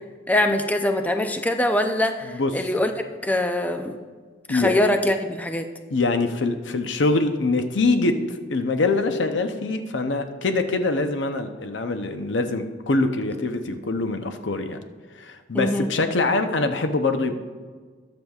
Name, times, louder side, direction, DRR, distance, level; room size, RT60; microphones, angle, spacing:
voice 1, 0.3-2.9 3.2-4.0 4.5-5.7 13.7-13.8 15.5-15.9, left 1 dB, 10° left, 6 dB, 0.5 m, -23 dB
voice 2, 5.9-8.1 8.5-14.8 15.1-17.3, left 3 dB, 70° left, 7 dB, 0.7 m, -24 dB
20.5 x 6.9 x 2.4 m, 1.5 s
head